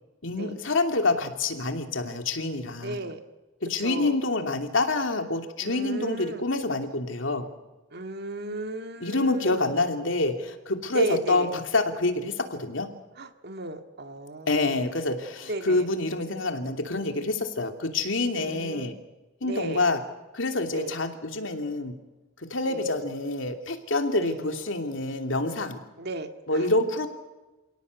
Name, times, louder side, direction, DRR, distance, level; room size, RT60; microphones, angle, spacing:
voice 1, 0.2-3.0 3.7-7.5 9.0-12.9 14.5-18.9 19.4-20.0 20.3-21.9 22.5-25.8 26.5-27.1, left 2 dB, 75° left, 6 dB, 2.8 m, -27 dB
voice 2, 2.8-3.2 3.8-4.2 5.6-6.4 7.9-9.8 10.9-11.5 13.2-14.9 15.5-15.9 18.4-18.9 19.4-19.8 20.7-21.0 22.7-22.9 24.2-24.4 26.0-26.7, right 2 dB, 55° right, 7 dB, 2.1 m, -35 dB
28.5 x 17.5 x 8.2 m, 1.1 s
head